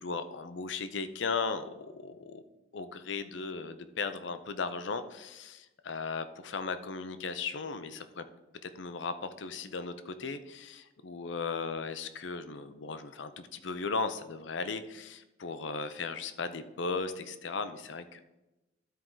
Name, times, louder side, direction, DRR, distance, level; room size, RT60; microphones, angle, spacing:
voice 1, 0.0-2.4 2.7-8.2 8.6-18.2, left 4 dB, 80° left, 10 dB, 0.6 m, -36 dB
12.5 x 4.6 x 3.8 m, 1.0 s
head